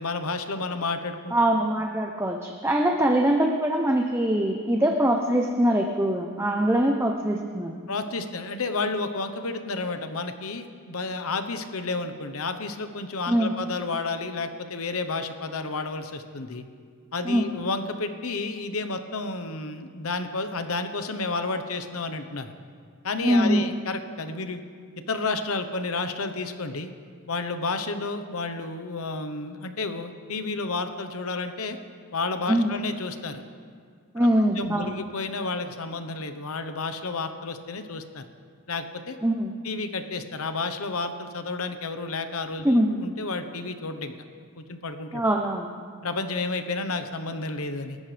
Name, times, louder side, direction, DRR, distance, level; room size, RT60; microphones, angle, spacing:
voice 1, 0.0-1.3 7.9-16.6 17.1-22.5 23.0-24.6 25.1-26.9 27.3-31.8 32.1-33.4 34.2-34.3 34.6-38.2 38.7-39.2 39.6-44.1 44.6-45.2 46.0-48.0, left 3 dB, 80° left, 8 dB, 1.1 m, -31 dB
voice 2, 1.3-7.8 13.3-13.5 17.2-17.5 23.2-23.6 32.5-32.8 34.1-35.0 39.2-39.6 42.6-42.9 45.1-45.7, right 1 dB, 10° right, 2 dB, 0.7 m, -23 dB
28.5 x 14.0 x 3.4 m, 2.1 s
head